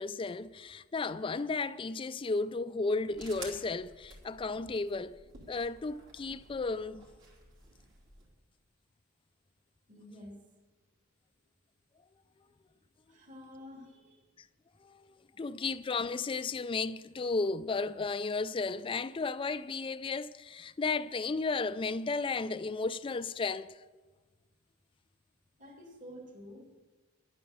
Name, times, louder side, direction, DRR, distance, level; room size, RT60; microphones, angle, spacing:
voice 1, 0.0-5.2 5.5-7.1 14.4-14.5 14.8-23.8, left 3 dB, 25° left, 0.4 m, -34 dB
sound 1, 3.1-8.3, right 3 dB, 65° right, 3.1 m, -52 dB
voice 2, 9.9-10.4 13.1-14.2 15.3-15.4 25.6-26.8, left 1 dB, 40° right, 2.5 m, -50 dB
11.5 x 9.3 x 7.0 m
head